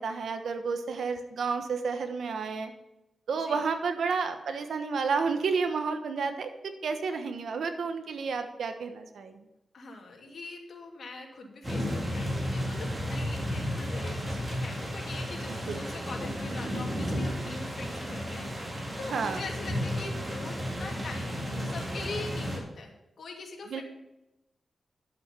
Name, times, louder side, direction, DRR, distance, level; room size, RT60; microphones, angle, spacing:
voice 1, 0.0-2.7 3.3-6.5 6.8-9.5 15.7-15.8 19.1-19.4 23.7-23.8, right 5 dB, 90° right, 7 dB, 1.2 m, -31 dB
voice 2, 9.7-23.8, left 3 dB, 75° left, 1 dB, 2.5 m, -43 dB
sound 1, 11.6-22.6, equal, 20° right, 3.9 m, -33 dB
11.5 x 7.8 x 5.7 m, 0.94 s
cardioid pair, 85°, 0 cm